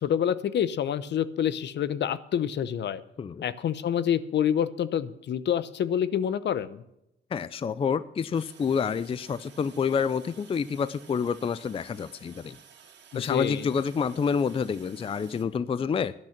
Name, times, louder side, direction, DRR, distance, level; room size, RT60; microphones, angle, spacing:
voice 1, 0.0-3.0 3.4-6.8 13.1-13.7, left 9 dB, 60° left, 16 dB, 0.8 m, -27 dB
voice 2, 7.3-12.6 13.1-16.1, left 6 dB, 30° left, 17 dB, 0.4 m, -28 dB
Toilet flush, 8.3-15.4, right 7 dB, 60° right, 2.2 m, -54 dB
12.0 x 11.0 x 5.9 m, 0.83 s
cardioid pair, 90°, 20 cm